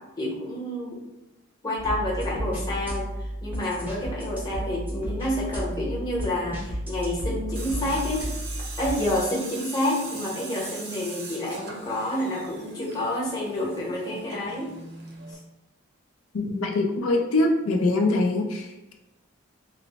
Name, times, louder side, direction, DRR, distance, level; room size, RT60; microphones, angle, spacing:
voice 1, 0.2-1.0 1.6-8.3 8.8-14.7 15.3-15.4, left 1 dB, 20° left, -5 dB, 0.8 m, -29 dB
sound 1, 1.8-9.0, equal, 10° right, 0.6 m, -33 dB
Tools, 7.6-15.3, right 3 dB, 50° right, 0.5 m, -41 dB
voice 2, 16.3-18.9, left 2 dB, 90° left, 2 dB, 0.5 m, -23 dB
3.1 x 2.0 x 3.9 m, 0.96 s
head